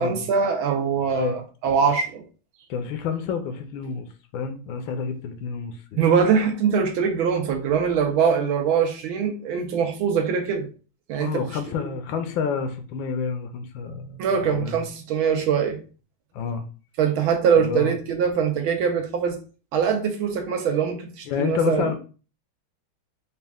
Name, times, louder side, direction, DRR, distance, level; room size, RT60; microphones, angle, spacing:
voice 1, 0.0-2.2 6.0-10.7 11.1-11.4 14.2-15.8 17.0-19.4 19.7-21.9, right 6 dB, 80° right, 1.5 m, -23 dB
voice 2, 2.7-4.1 4.3-6.0 11.2-14.9 16.3-16.7 17.6-17.9 21.3-22.0, left 6 dB, 75° left, 1.2 m, -29 dB
4.2 x 2.4 x 3.4 m
omnidirectional pair, 2.3 m